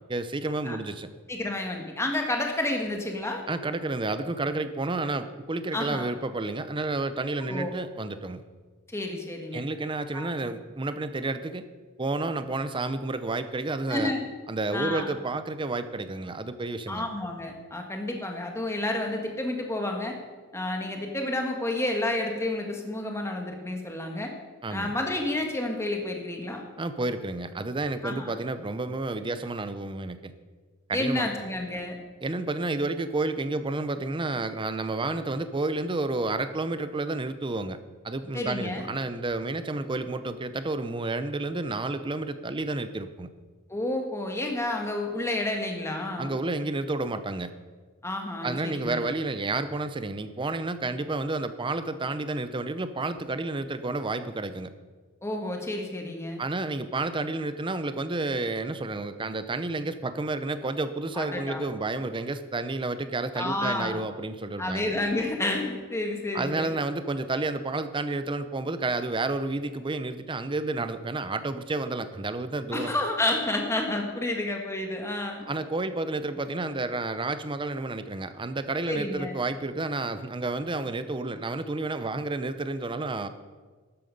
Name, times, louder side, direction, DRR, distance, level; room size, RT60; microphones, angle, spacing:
voice 1, 0.1-1.1 3.5-8.4 9.5-11.6 12.0-14.1 14.5-17.1 24.6-24.9 26.8-30.3 30.9-31.3 32.2-37.8 38.0-43.3 46.2-47.5 48.4-54.7 56.4-64.9 66.3-72.9 75.4-83.3, right 2 dB, 25° right, 11 dB, 0.6 m, -30 dB
voice 2, 1.3-3.4 5.7-6.1 7.4-7.7 8.9-9.6 10.1-10.3 13.9-14.2 14.7-15.1 16.9-20.2 20.5-24.3 24.7-26.6 28.0-28.3 30.9-32.0 38.3-38.9 43.7-46.3 48.0-49.0 55.2-56.4 61.1-61.6 63.3-64.0 64.6-66.7 72.7-75.5 78.9-79.3, left 1 dB, 15° left, 2 dB, 1.6 m, -30 dB
12.5 x 9.1 x 5.3 m, 1.4 s
head